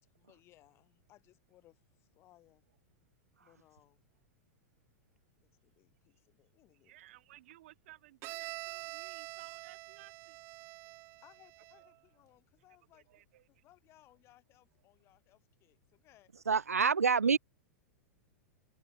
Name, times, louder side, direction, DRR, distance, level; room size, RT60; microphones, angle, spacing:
voice 1, 0.0-2.6 3.4-4.0 5.4-7.0 11.2-13.2 13.5-16.3, left 15 dB, 35° left, 7.0 m, -65 dB
voice 2, 6.8-10.4 12.9-13.6, right 16 dB, 50° right, 1.5 m, -58 dB
Bowed string instrument, 8.2-12.0, right 22 dB, 35° right, 1.0 m, -46 dB
voice 3, 16.5-17.4, right 5 dB, 80° right, 0.4 m, -26 dB
figure-of-eight pair, 95°, 8 cm